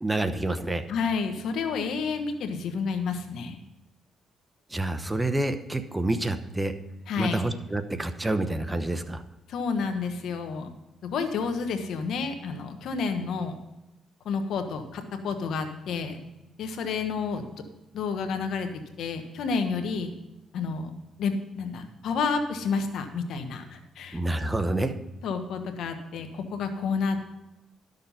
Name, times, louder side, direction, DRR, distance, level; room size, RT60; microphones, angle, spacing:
voice 1, 0.0-0.8 4.7-6.8 7.2-9.2 24.1-24.9, right 2 dB, 15° right, 10 dB, 0.9 m, -28 dB
voice 2, 0.9-3.6 7.1-7.4 9.5-10.7 11.0-13.5 14.2-16.1 16.6-17.4 17.9-18.7 19.0-20.1 20.5-20.9 21.2-24.2 25.2-27.3, left 5 dB, 75° left, 7 dB, 1.3 m, -30 dB
12.0 x 6.7 x 5.6 m, 0.95 s
cardioid pair, 90°, 0 cm